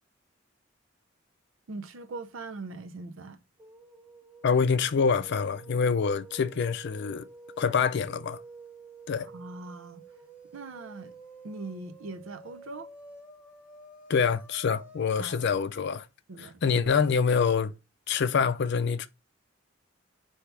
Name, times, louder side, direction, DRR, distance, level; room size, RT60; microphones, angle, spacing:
voice 1, 1.7-3.4 9.2-10.0 10.5-11.2 11.4-12.9 15.2-15.4 16.3-17.0, right 3 dB, 80° right, 0.6 m, -41 dB
sound 1, 3.6-15.6, right 3 dB, 5° right, 1.0 m, -50 dB
voice 2, 4.4-7.3 7.6-8.4 9.1-9.3 14.1-16.1 16.6-17.7 18.1-19.1, left 6 dB, 60° left, 0.4 m, -26 dB
5.7 x 2.8 x 3.3 m
head